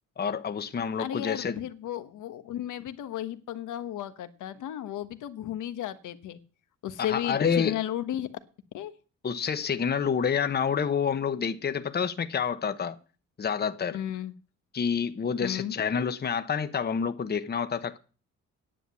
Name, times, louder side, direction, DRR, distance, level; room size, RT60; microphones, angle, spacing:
voice 1, 0.2-1.6 7.0-7.8 9.2-13.0 13.4-14.0 14.7-18.0, left 6 dB, 35° left, 1.0 m, -28 dB
voice 2, 1.0-6.4 6.8-8.3 8.7-8.9 13.9-14.3 15.4-15.7, left 11 dB, 80° left, 1.3 m, -34 dB
10.0 x 7.7 x 8.3 m
cardioid pair, 90°, 30 cm